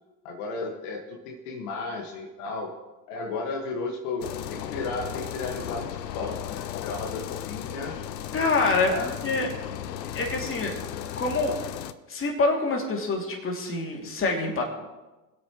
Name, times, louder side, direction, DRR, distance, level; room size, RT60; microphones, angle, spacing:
voice 1, 0.2-2.7 3.1-7.9 8.8-9.2, left 3 dB, 65° left, 0 dB, 2.0 m, -34 dB
sound 1, 4.2-11.9, left 10 dB, 90° left, 0.8 m, -35 dB
voice 2, 8.3-8.9 9.2-9.5 10.1-10.8 11.2-11.6 12.1-14.7, left 3 dB, 25° left, 0 dB, 2.8 m, -26 dB
22.5 x 8.3 x 3.2 m, 1.1 s
hypercardioid pair, 95°, 48 cm